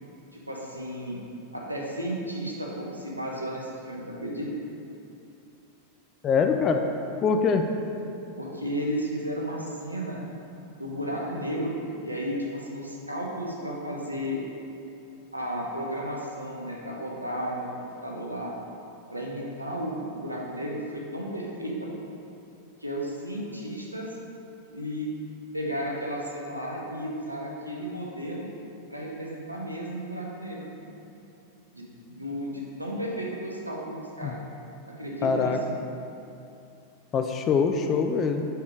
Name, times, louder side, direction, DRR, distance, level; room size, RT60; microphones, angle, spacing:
voice 1, 0.3-1.2 1.5-4.5 8.4-10.2 10.8-14.4 15.3-18.5 19.1-22.1 22.8-24.1 24.7-25.1 25.5-28.5 28.9-30.9 31.7-34.4 34.9-35.6, equal, 85° right, -3 dB, 0.9 m, -33 dB
voice 2, 6.2-6.8 7.2-7.7 34.2-34.3 35.2-35.6 37.1-38.5, left 5 dB, 30° left, 5 dB, 0.4 m, -23 dB
5.0 x 4.7 x 4.6 m, 2.7 s
figure-of-eight pair, 90°, 0 cm